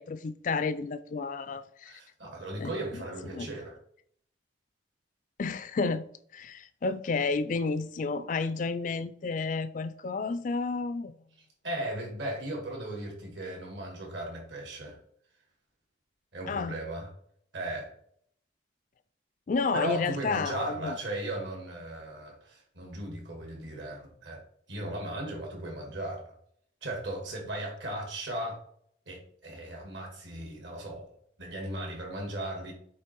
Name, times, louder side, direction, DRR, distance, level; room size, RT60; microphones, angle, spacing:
voice 1, 0.0-2.0 2.6-2.7 3.3-3.5 5.4-6.0 6.3-11.1 16.5-16.8 19.5-21.0, left 4 dB, 40° left, 0.3 m, -31 dB
voice 2, 1.8-3.8 11.6-15.0 16.3-17.1 17.5-17.9 19.7-24.4 24.7-26.3 26.8-28.6 29.1-31.1 31.4-32.7, right 1 dB, 70° right, 2.4 m, -37 dB
8.1 x 3.2 x 4.5 m
head